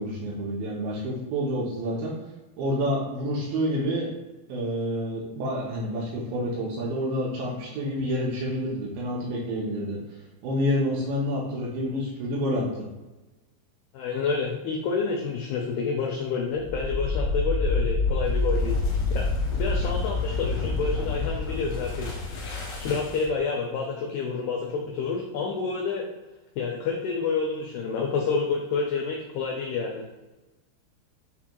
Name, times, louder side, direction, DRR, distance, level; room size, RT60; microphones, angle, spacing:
voice 1, 0.0-2.1 2.6-4.1 4.5-10.0 10.4-12.7, equal, 90° right, -5 dB, 2.1 m, -28 dB
voice 2, 13.9-18.8 19.1-19.3 19.6-22.1 22.4-26.1 26.6-30.1, left 4 dB, 90° left, -1 dB, 2.2 m, -29 dB
sound 1, 16.6-23.4, left 3 dB, 65° left, 2.2 m, -27 dB
7.9 x 2.9 x 2.2 m, 1.1 s
omnidirectional pair, 5.2 m